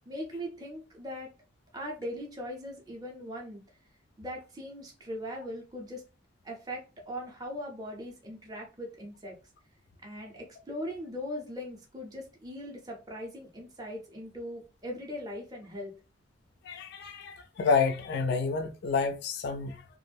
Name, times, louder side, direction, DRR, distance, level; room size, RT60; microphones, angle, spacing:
voice 1, 0.1-1.3 1.7-3.6 4.2-6.0 6.4-9.3 10.0-15.9, equal, 20° right, 0.6 m, -40 dB
voice 2, 16.6-19.8, left 5 dB, 60° left, 0.3 m, -29 dB
2.4 x 2.0 x 3.3 m
head